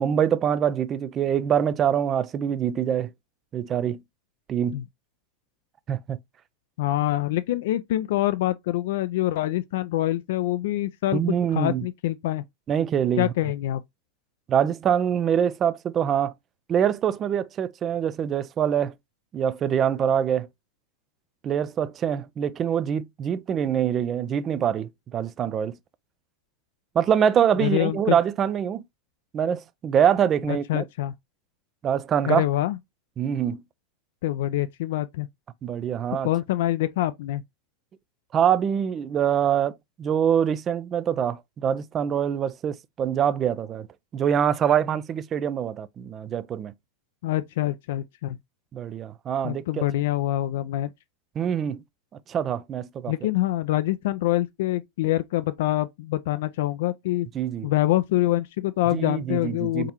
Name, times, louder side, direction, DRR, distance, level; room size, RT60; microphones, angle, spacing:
voice 1, 0.0-3.1 3.5-4.0 4.5-4.8 5.9-6.2 11.1-11.9 12.7-13.3 14.5-16.3 16.7-18.9 19.3-20.5 21.4-25.8 26.9-28.8 29.3-30.8 31.8-32.4 33.2-33.6 35.6-36.3 38.3-43.9 44.1-46.7 48.7-49.8 51.4-51.8 52.3-53.1 57.3-57.7 58.9-59.9, right 8 dB, 25° right, 0.4 m, -24 dB
voice 2, 6.8-12.4 13.2-13.8 27.6-28.2 30.5-31.1 32.2-32.8 34.2-35.3 36.2-37.4 47.2-48.4 49.4-50.9 53.1-57.3 57.6-59.9, left 15 dB, 55° left, 0.4 m, -25 dB
4.4 x 3.7 x 2.9 m
figure-of-eight pair, 90°, 0 cm